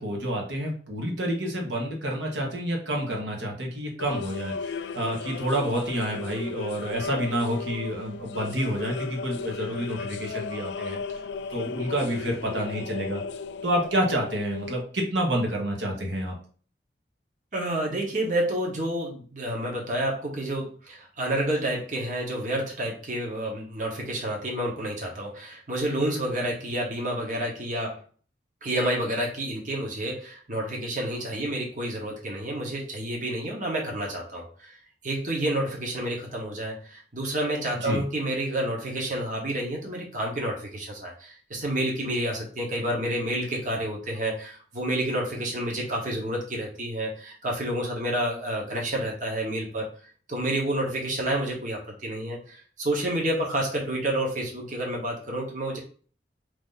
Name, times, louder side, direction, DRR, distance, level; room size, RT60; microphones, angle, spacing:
voice 1, 0.0-11.2 11.5-13.2 13.6-16.3 37.8-38.0, equal, 90° right, 0 dB, 1.3 m, -29 dB
sound 1, 4.0-14.8, left 5 dB, 75° left, 0.3 m, -36 dB
voice 2, 17.5-28.0 28.6-34.8 35.0-49.9 50.3-55.8, right 1 dB, 45° right, -1 dB, 1.2 m, -29 dB
4.8 x 2.7 x 3.9 m, 0.43 s
head